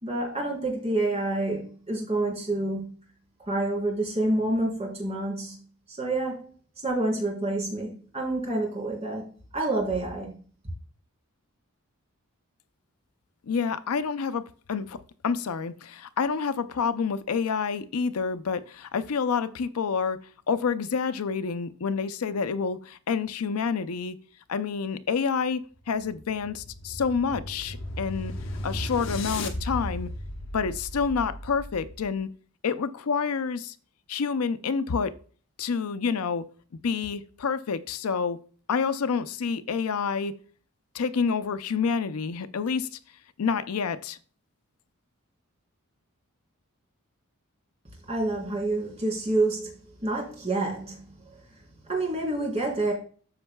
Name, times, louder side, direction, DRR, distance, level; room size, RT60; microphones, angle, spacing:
voice 1, 0.0-2.9 3.5-5.6 5.9-6.5 6.8-9.3 9.5-10.3 48.1-49.7 50.0-51.0 51.9-52.9, right 2 dB, 30° right, 3.6 m, -28 dB
voice 2, 13.5-15.0 15.2-20.2 20.5-24.2 24.5-28.3 28.6-30.1 30.5-32.3 32.6-33.7 34.1-35.1 35.6-36.5 36.8-38.4 38.7-40.4 40.9-42.9 43.4-44.2, left 5 dB, 80° left, 0.5 m, -28 dB
sound 1, 25.8-32.2, left 1 dB, 60° left, 1.2 m, -36 dB
13.5 x 5.3 x 2.3 m
head